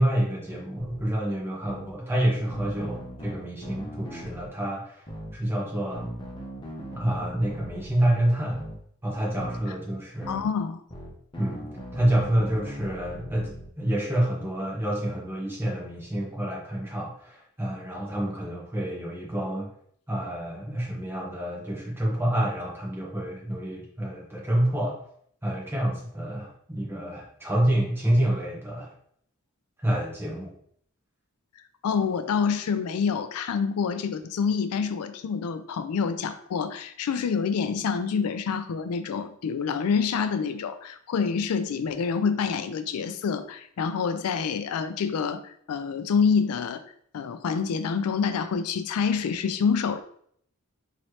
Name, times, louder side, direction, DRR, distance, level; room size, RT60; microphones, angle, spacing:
voice 1, 0.0-5.0 5.3-6.1 6.9-8.6 9.0-10.4 11.4-19.7 20.1-25.0 25.4-28.9 29.8-30.5, right 1 dB, 10° right, -4 dB, 1.0 m, -28 dB
sound 1, 0.8-1.0 1.6-1.9 2.5-4.5 5.1-5.3 5.9-7.9 8.5-8.8 9.4-9.6 10.2-10.5 10.9-13.7, equal, 20° left, 0.7 m, -38 dB
voice 2, 10.3-10.8 31.8-46.8 47.1-50.1, left 6 dB, 90° left, 11 dB, 0.4 m, -27 dB
4.1 x 3.0 x 3.1 m, 0.65 s
head